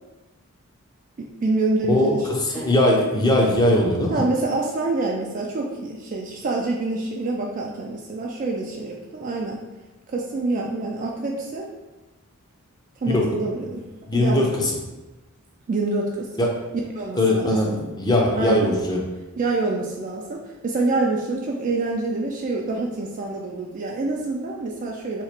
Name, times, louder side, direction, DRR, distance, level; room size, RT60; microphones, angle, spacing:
voice 1, 1.2-2.7 4.1-9.6 10.1-11.7 13.0-13.9 14.1-14.6 15.7-16.3 17.0-17.8 18.4-18.8 19.4-25.2, right 2 dB, 35° right, -1 dB, 0.3 m, -26 dB
voice 2, 1.9-4.2 13.1-13.3 14.1-14.7 16.4-16.5 17.2-19.0, left 1 dB, 20° left, -1 dB, 0.5 m, -20 dB
2.9 x 2.4 x 4.3 m, 1.1 s
head